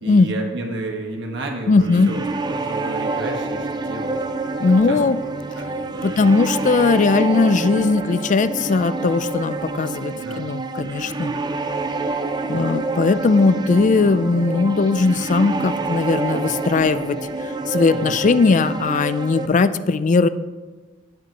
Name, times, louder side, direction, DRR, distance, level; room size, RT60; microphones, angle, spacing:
voice 1, 0.0-2.2 2.5-4.2 4.9-6.3 10.1-10.5 17.9-18.2, right 2 dB, 65° right, 2 dB, 1.3 m, -32 dB
voice 2, 1.7-2.1 4.6-5.2 6.0-11.3 12.5-20.3, left 4 dB, 40° left, 13 dB, 0.4 m, -18 dB
sound 1, 1.8-19.5, right 3 dB, 20° right, 0.5 m, -27 dB
17.5 x 6.1 x 2.9 m, 1.3 s
head